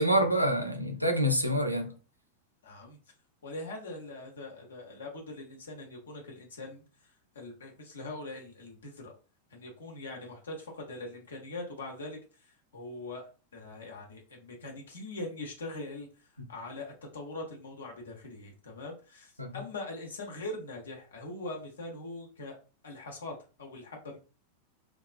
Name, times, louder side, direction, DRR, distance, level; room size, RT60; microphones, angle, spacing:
voice 1, 0.0-1.9 19.4-19.6, equal, 90° right, 0.4 m, -27 dB
voice 2, 2.6-3.0 3.4-6.8 7.3-9.1 9.5-12.2 12.7-16.1 16.5-22.6 22.8-24.2, left 2 dB, 65° left, 0.8 m, -42 dB
2.3 x 2.2 x 2.4 m
figure-of-eight pair, 90°, 0 cm